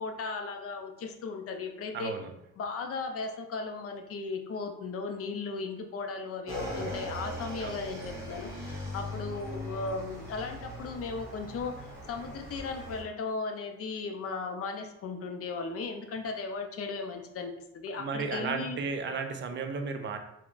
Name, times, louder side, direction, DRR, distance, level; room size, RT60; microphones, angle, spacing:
voice 1, 0.0-2.2 2.6-18.8, left 4 dB, 50° left, 5 dB, 0.5 m, -36 dB
voice 2, 1.9-2.3 7.6-7.8 17.9-20.2, right 5 dB, 40° right, 7 dB, 0.4 m, -34 dB
Motorcycle / Engine, 6.5-13.0, equal, 10° right, 1.1 m, -40 dB
3.4 x 2.0 x 2.4 m, 0.83 s
cardioid pair, 90°, 30 cm